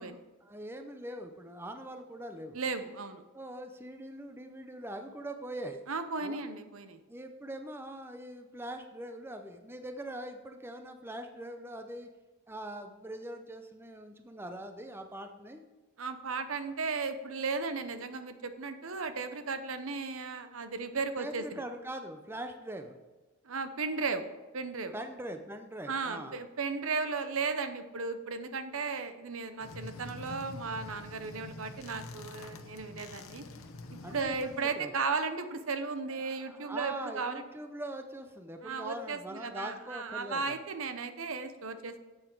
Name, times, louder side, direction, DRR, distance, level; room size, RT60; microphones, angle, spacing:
voice 1, 0.0-2.6 3.3-5.8 6.2-6.5 7.1-12.1 12.5-15.6 21.2-23.0 24.9-26.4 34.0-34.9 36.1-40.6, right 1 dB, 10° right, 6 dB, 0.5 m, -42 dB
voice 2, 2.5-3.2 5.9-7.0 16.0-21.6 23.4-24.3 24.5-24.9 25.9-33.4 33.9-37.4 38.6-42.0, right 4 dB, 75° right, 9 dB, 0.8 m, -35 dB
sound 1, 29.6-34.7, left 2 dB, 75° left, 0.9 m, -46 dB
8.8 x 8.0 x 4.6 m, 1.2 s
head